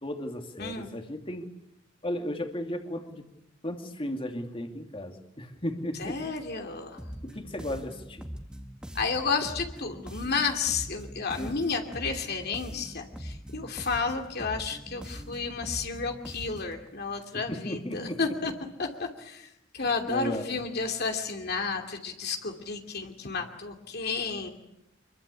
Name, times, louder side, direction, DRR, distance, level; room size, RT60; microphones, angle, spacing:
voice 1, 0.0-1.5 2.0-3.2 3.6-6.2 7.2-8.3 11.4-11.6 17.3-18.2 19.8-20.5, left 1 dB, 30° left, 5 dB, 2.6 m, -35 dB
voice 2, 0.6-0.9 6.0-7.1 8.9-18.5 18.8-24.5, left 4 dB, 55° left, 3 dB, 2.8 m, -32 dB
sound 1, 7.0-16.8, equal, 5° right, 1.8 m, -42 dB
26.0 x 22.5 x 8.5 m, 0.86 s
head